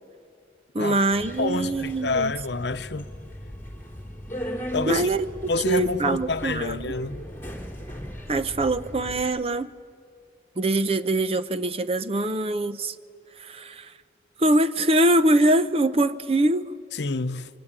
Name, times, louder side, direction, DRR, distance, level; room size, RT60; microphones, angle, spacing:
voice 1, 0.7-2.3 4.9-5.2 5.7-7.0 8.3-9.7 10.6-12.9 13.4-13.9 14.4-16.8, right 1 dB, 35° right, 0.7 m, -23 dB
Subway metro underground, 1.1-9.2, equal, 15° left, 3.9 m, -37 dB
voice 2, 1.4-3.1 4.7-5.1 5.5-7.2 16.9-17.5, left 3 dB, 75° left, 0.8 m, -28 dB
27.0 x 24.0 x 8.9 m
head